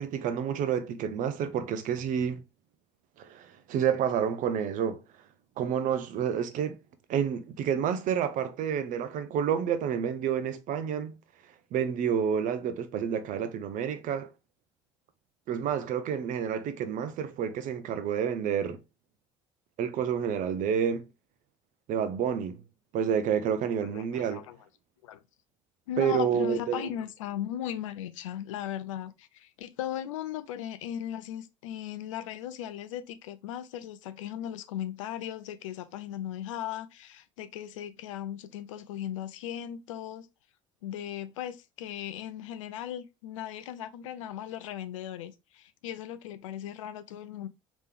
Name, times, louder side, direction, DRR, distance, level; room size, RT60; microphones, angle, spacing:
voice 1, 0.0-2.4 3.2-5.0 5.6-6.8 7.1-11.1 11.7-14.3 15.5-18.8 19.8-21.1 21.9-22.6 22.9-24.5 26.0-26.8, right 8 dB, 50° right, 0.7 m, -29 dB
voice 2, 23.9-24.6 25.0-25.2 25.9-40.3 40.8-47.5, left 11 dB, 75° left, 0.4 m, -37 dB
3.3 x 3.0 x 3.3 m
figure-of-eight pair, 60°, 16 cm